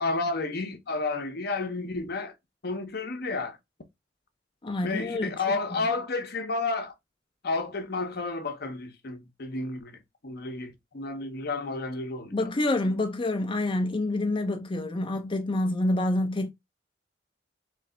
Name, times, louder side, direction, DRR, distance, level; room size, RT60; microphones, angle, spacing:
voice 1, 0.0-2.3 2.6-3.6 4.8-6.9 7.4-12.5, left 3 dB, 60° left, 0.7 m, -31 dB
voice 2, 4.6-5.3 12.3-16.5, left 2 dB, 30° left, 0.5 m, -27 dB
3.2 x 3.2 x 3.8 m
head